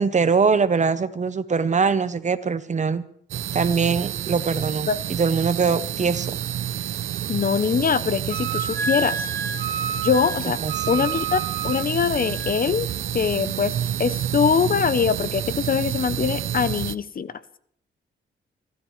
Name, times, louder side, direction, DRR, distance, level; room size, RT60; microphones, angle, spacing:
voice 1, 0.0-3.0 3.5-6.4 10.6-11.0, right 5 dB, 35° right, 13 dB, 0.8 m, -22 dB
sound 1, 3.3-17.0, right 11 dB, 80° right, 0.6 m, -29 dB
voice 2, 7.3-9.3 10.0-10.6 10.9-12.9 13.1-17.4, left 6 dB, 45° left, 14 dB, 0.7 m, -23 dB
Wind instrument woodwind instrument, 8.3-12.6, right 6 dB, 55° right, 1.2 m, -30 dB
29.5 x 13.0 x 3.2 m, 0.65 s
cardioid pair, 115°, 20 cm